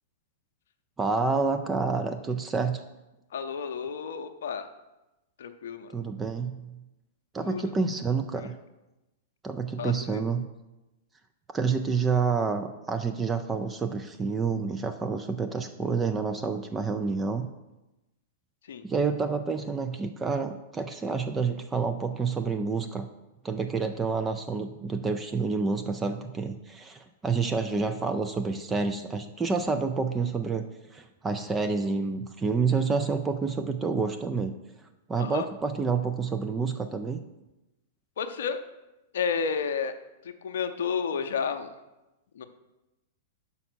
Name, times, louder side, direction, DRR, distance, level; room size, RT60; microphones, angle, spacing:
voice 1, 1.0-2.8 5.9-6.7 7.3-8.5 9.4-10.4 11.5-17.5 18.8-23.1 23.4-30.7 30.9-34.5 35.1-37.2, right 4 dB, 15° right, 7 dB, 0.4 m, -28 dB
voice 2, 3.3-4.7 5.4-5.9 7.4-7.6 8.4-8.5 9.8-10.2 18.7-18.8 35.2-35.5 38.2-38.6 39.1-39.9 40.4-41.7 42.4-42.5, left 6 dB, 70° left, 8 dB, 0.6 m, -31 dB
5.7 x 5.4 x 6.2 m, 0.99 s
hypercardioid pair, 110°, 0 cm